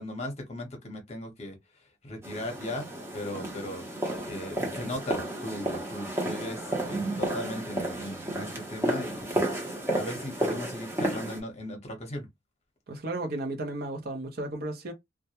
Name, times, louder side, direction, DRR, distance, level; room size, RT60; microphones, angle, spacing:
voice 1, 0.0-1.6 2.0-2.9 3.1-9.5 9.9-12.3, left 1 dB, 35° left, 0.8 m, -37 dB
sound 1, 2.2-11.4, right 1 dB, 15° right, 0.7 m, -32 dB
voice 2, 12.9-14.9, right 2 dB, 50° right, 0.6 m, -34 dB
2.2 x 2.1 x 2.8 m
head